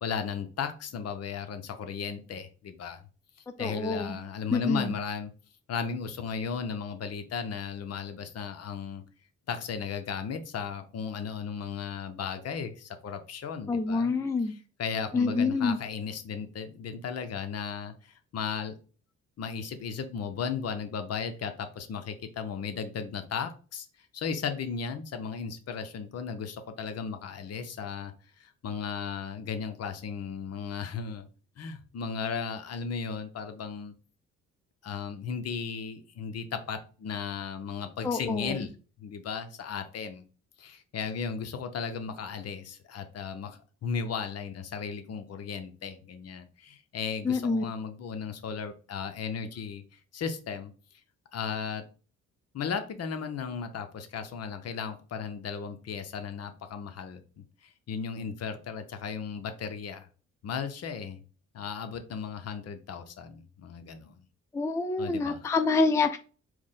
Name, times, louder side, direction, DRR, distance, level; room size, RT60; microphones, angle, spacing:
voice 1, 0.0-3.0 3.6-5.3 5.7-9.0 9.5-14.1 14.8-18.7 19.4-23.9 24.1-31.3 31.6-33.9 34.8-38.7 39.0-40.2 40.6-50.7 51.3-51.8 52.5-57.2 57.6-60.1 60.4-61.2 61.5-64.2 65.0-65.4, left 6 dB, 55° left, 0.8 m, -35 dB
voice 2, 3.6-4.2 4.5-4.9 13.7-14.5 15.1-15.8 38.0-38.7 47.2-47.6 64.5-66.2, left 3 dB, 10° left, 0.3 m, -27 dB
4.6 x 2.1 x 3.7 m
cardioid pair, 90°, 30 cm